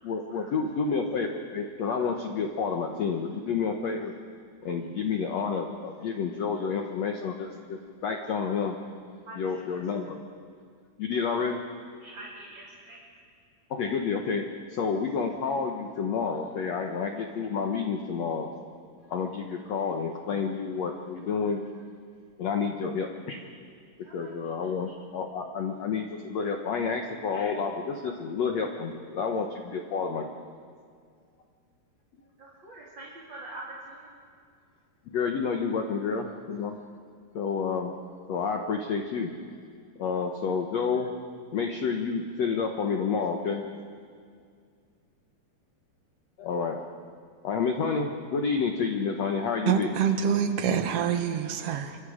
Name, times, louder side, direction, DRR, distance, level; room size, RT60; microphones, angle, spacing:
voice 1, 0.0-4.1 4.6-8.7 9.4-10.2 11.0-11.6 13.7-18.5 19.1-21.6 22.4-23.4 24.1-30.3 35.1-36.8 37.4-37.9 38.3-39.3 40.0-41.1 41.5-43.6 46.4-46.8 47.4-49.9, left 5 dB, 70° left, 3 dB, 1.6 m, -29 dB
voice 2, 9.3-9.8 12.0-13.0 24.0-24.7 32.4-34.2 40.0-40.1, right 2 dB, 30° right, -5 dB, 3.3 m, -45 dB
voice 3, 49.7-52.0, right 8 dB, 65° right, 6 dB, 1.6 m, -26 dB
28.5 x 24.5 x 5.1 m, 2.2 s
omnidirectional pair, 4.6 m